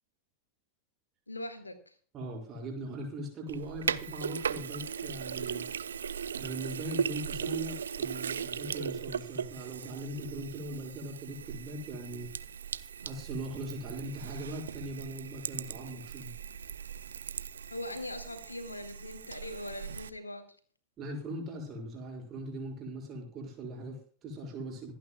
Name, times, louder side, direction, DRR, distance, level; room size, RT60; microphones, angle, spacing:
voice 1, 1.3-1.9 17.7-20.5, left 1 dB, 80° left, 8 dB, 2.1 m, -41 dB
voice 2, 2.1-5.7 6.3-12.3 13.0-16.3 21.0-24.9, right 1 dB, 30° right, 2 dB, 6.6 m, -40 dB
Sink (filling or washing), 3.5-20.1, right 7 dB, 70° right, 0.6 m, -38 dB
26.5 x 9.4 x 2.4 m, 0.42 s
figure-of-eight pair, 90°, 0 cm